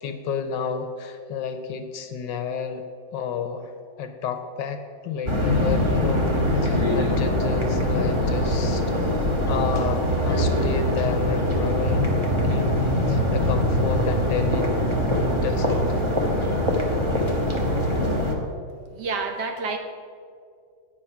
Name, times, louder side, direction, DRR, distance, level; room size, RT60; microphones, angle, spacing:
voice 1, 0.0-2.8 3.1-3.7 4.0-6.4 6.6-9.0 9.5-14.7 15.4-16.0, left 6 dB, 75° left, 8 dB, 1.2 m, -31 dB
sound 1, 5.3-18.3, left 1 dB, 20° right, 0.7 m, -23 dB
voice 2, 18.9-19.8, right 4 dB, 65° right, 4 dB, 1.3 m, -28 dB
9.0 x 7.5 x 5.8 m, 2.2 s
omnidirectional pair, 2.2 m